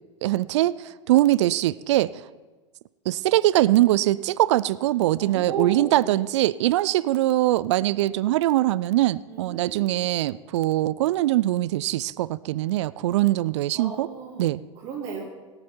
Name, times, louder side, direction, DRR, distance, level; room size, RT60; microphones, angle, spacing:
voice 1, 0.2-2.2 3.1-14.1 14.4-14.6, right 15 dB, 65° right, 20 dB, 0.4 m, -22 dB
voice 2, 5.2-6.2 9.3-10.0 13.7-15.2, right 5 dB, 45° right, -3 dB, 3.3 m, -35 dB
18.0 x 8.9 x 4.5 m, 1.3 s
hypercardioid pair, 90°, 16 cm